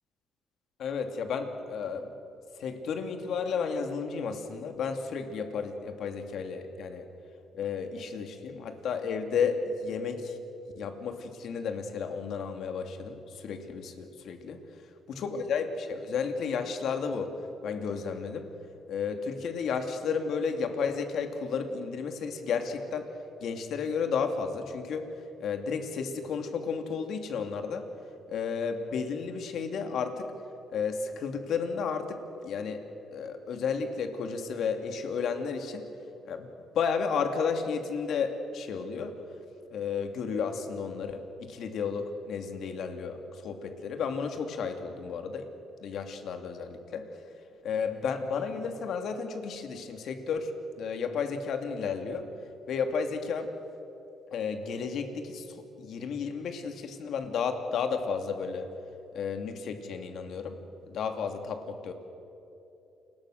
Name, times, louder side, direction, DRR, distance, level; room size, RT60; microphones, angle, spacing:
voice 1, 0.8-2.1 2.6-7.0 7.5-10.4 10.8-14.6 15.1-17.3 17.6-18.5 18.9-23.1 23.4-25.1 25.4-27.9 28.3-30.3 30.7-32.8 33.1-35.8 36.2-36.5 36.7-39.1 39.7-45.5 45.8-47.1 47.6-50.5 50.8-52.3 52.7-53.5 54.3-58.7 59.1-60.6 60.9-61.9, left 5 dB, 70° left, 6 dB, 2.7 m, -32 dB
29.0 x 21.5 x 6.6 m, 2.9 s
cardioid pair, 90°, 0 cm